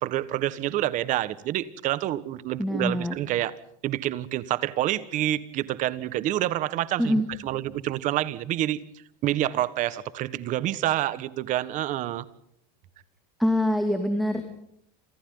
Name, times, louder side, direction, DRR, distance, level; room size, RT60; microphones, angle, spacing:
voice 1, 0.0-3.6 3.8-8.8 9.2-12.2, right 14 dB, 40° right, 1.5 m, -28 dB
voice 2, 2.6-3.1 7.0-7.3 13.4-14.4, left 1 dB, ahead, 2.7 m, -24 dB
30.0 x 27.5 x 4.0 m
supercardioid pair, 155°, 21 cm